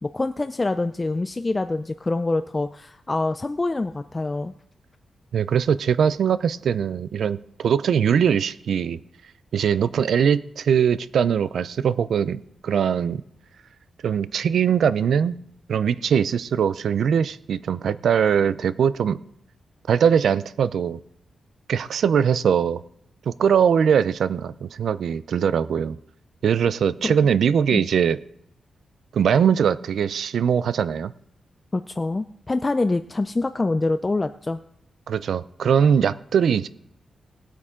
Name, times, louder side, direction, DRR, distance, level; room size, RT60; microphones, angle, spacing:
voice 1, 0.0-4.5 27.0-27.1 27.7-27.8 31.7-34.6, left 2 dB, 20° left, 10 dB, 0.4 m, -25 dB
voice 2, 5.3-9.0 9.5-13.2 14.0-15.3 15.7-19.2 19.9-21.0 21.7-22.8 23.3-26.0 26.4-28.2 29.1-31.1 35.1-36.7, right 7 dB, 75° right, 15 dB, 0.5 m, -21 dB
19.5 x 8.2 x 3.7 m, 0.73 s
wide cardioid pair, 145°, 0 cm